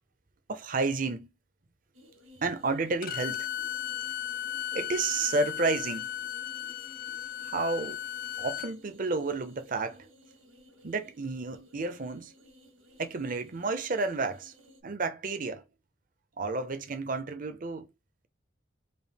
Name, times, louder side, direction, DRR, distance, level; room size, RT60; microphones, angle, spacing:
voice 1, 0.5-1.3 2.4-3.5 4.7-6.1 7.4-8.0 8.4-10.1 10.8-12.3 13.0-14.5 14.8-15.6 16.4-17.9, right 3 dB, 45° right, 0.6 m, -31 dB
sound 1, 1.9-14.8, left 1 dB, 90° right, 1.4 m, -56 dB
Bowed string instrument, 3.0-8.7, left 10 dB, 45° left, 0.3 m, -36 dB
3.4 x 2.7 x 4.0 m
head